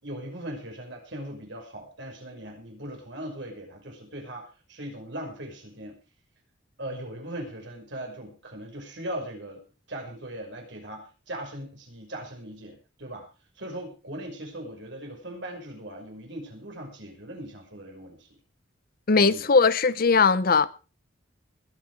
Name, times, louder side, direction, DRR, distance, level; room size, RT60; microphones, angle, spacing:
voice 1, 0.0-6.0 6.8-9.6 9.9-13.3 13.6-18.3 19.3-19.5, right 1 dB, 60° right, 5.8 m, -39 dB
voice 2, 19.1-20.7, left 4 dB, 45° left, 0.7 m, -19 dB
21.0 x 9.0 x 4.8 m
head